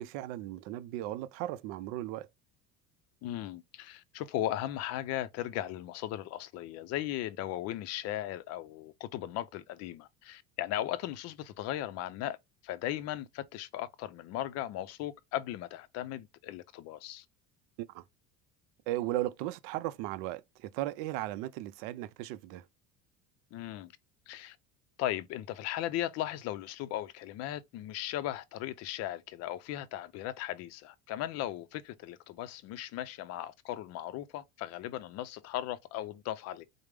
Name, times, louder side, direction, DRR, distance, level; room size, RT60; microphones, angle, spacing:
voice 1, 0.0-2.3 17.8-18.0 18.9-22.7, right 15 dB, 75° right, 0.5 m, -36 dB
voice 2, 3.2-12.4 12.6-17.2 23.5-23.9 24.3-24.6 25.0-36.7, left 13 dB, 55° left, 0.4 m, -37 dB
4.9 x 2.0 x 3.3 m
cardioid pair, 135°, 32 cm